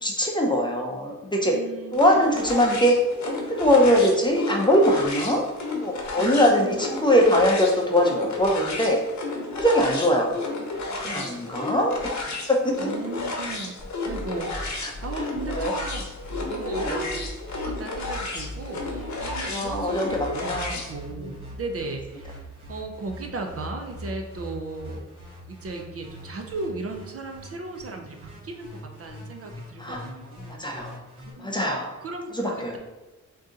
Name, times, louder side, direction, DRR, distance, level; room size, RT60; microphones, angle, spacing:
voice 1, 0.0-1.5 1.9-2.9 3.5-5.4 5.8-9.0 9.6-10.3 11.0-11.9 12.5-12.7 14.8-14.9 15.5-15.7 16.8-17.0 19.5-20.8 21.2-21.3 29.8-30.0 30.6-31.0 31.4-31.9 32.3-32.8, equal, 15° left, -1 dB, 0.5 m, -22 dB
voice 2, 1.5-2.0 2.3-2.4 6.2-6.8 11.0-11.4 12.8-13.7 14.0-16.1 16.4-20.6 20.9-22.4 22.7-25.1 25.5-28.7 29.0-30.5 31.3-31.6 32.0-32.8, right 3 dB, 45° right, 3 dB, 0.4 m, -36 dB
sound 1, 1.9-20.9, left 3 dB, 60° left, 0.8 m, -33 dB
sound 2, 13.8-31.3, left 1 dB, 15° right, 1.3 m, -41 dB
3.7 x 2.7 x 3.8 m, 1.1 s
wide cardioid pair, 165°, 32 cm